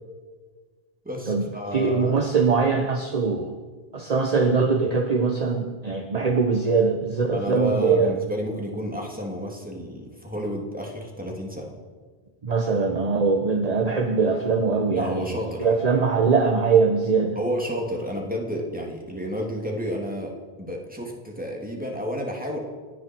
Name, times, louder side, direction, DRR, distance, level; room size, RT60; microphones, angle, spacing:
voice 1, 1.0-2.1 7.3-11.7 14.9-15.7 17.4-22.6, equal, 10° right, 0 dB, 2.6 m, -31 dB
voice 2, 1.7-3.6 3.9-8.2 12.4-15.3 15.6-17.4, right 4 dB, 40° right, 5 dB, 1.1 m, -22 dB
29.0 x 10.0 x 4.5 m, 1.5 s
omnidirectional pair, 1.1 m